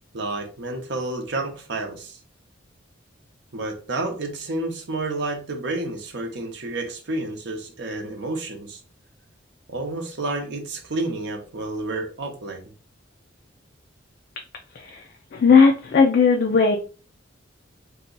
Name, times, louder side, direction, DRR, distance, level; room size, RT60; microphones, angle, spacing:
voice 1, 0.1-2.2 3.5-8.8 9.7-12.6, right 2 dB, 65° right, 3 dB, 0.7 m, -30 dB
voice 2, 15.3-16.8, left 5 dB, 55° left, 2 dB, 0.4 m, -17 dB
2.7 x 2.2 x 3.8 m, 0.37 s
head